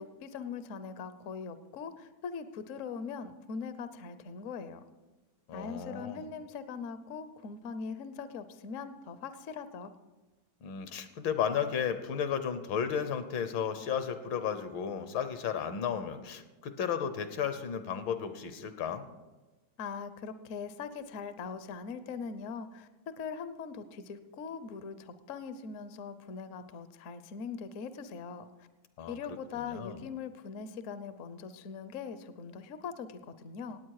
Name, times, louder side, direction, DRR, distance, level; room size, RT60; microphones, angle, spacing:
voice 1, 0.0-4.8 5.5-9.9 19.8-28.5 29.1-33.8, left 5 dB, 60° left, 12 dB, 0.8 m, -41 dB
voice 2, 5.5-6.3 10.6-19.0 29.0-29.2 29.5-30.0, left 7 dB, 80° left, 10 dB, 1.7 m, -34 dB
18.0 x 8.6 x 4.8 m, 1.2 s
omnidirectional pair, 2.1 m